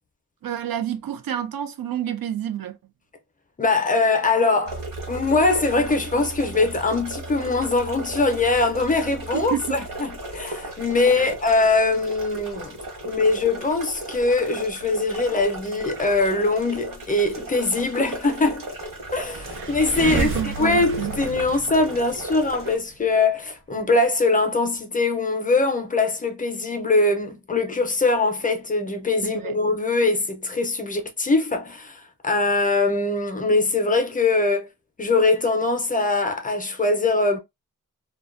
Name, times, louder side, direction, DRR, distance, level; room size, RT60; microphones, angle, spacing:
voice 1, 0.4-2.8 9.3-9.8 11.2-11.3 19.6-19.7 20.1-21.1 29.2-29.6, right 10 dB, 85° right, 0.5 m, -29 dB
voice 2, 3.6-4.8 5.1-12.8 13.0-18.7 19.1-20.3 20.6-34.7 35.0-37.4, left 3 dB, 25° left, 0.4 m, -22 dB
sound 1, 4.7-22.8, right 2 dB, 70° right, 1.1 m, -36 dB
sound 2, 19.1-22.7, right 3 dB, 35° right, 0.5 m, -31 dB
2.5 x 2.2 x 2.4 m
wide cardioid pair, 155°, 34 cm